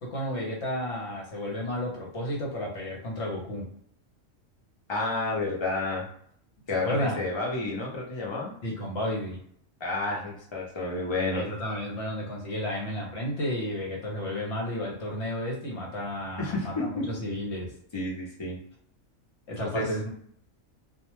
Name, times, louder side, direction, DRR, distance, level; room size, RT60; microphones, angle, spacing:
voice 1, 0.0-3.7 6.7-7.3 8.6-9.4 11.3-17.7 19.5-20.1, left 1 dB, 60° left, -1 dB, 1.0 m, -32 dB
voice 2, 4.9-6.1 6.7-8.5 9.8-11.4 16.4-17.1 17.9-18.6 19.7-19.9, left 2 dB, 35° left, -3 dB, 0.5 m, -30 dB
2.3 x 2.2 x 3.0 m, 0.65 s
omnidirectional pair, 1.4 m